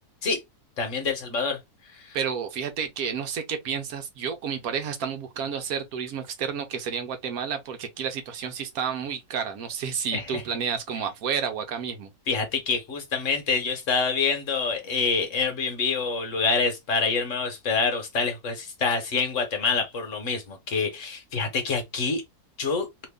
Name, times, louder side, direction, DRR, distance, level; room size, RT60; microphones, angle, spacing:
voice 1, 0.8-1.6 1.9-2.2 10.1-10.4 12.3-22.2 22.6-22.9, left 4 dB, 60° left, 1.2 m, -26 dB
voice 2, 2.1-12.1, right 7 dB, 70° right, 1.1 m, -30 dB
2.9 x 2.6 x 3.4 m
omnidirectional pair, 1.7 m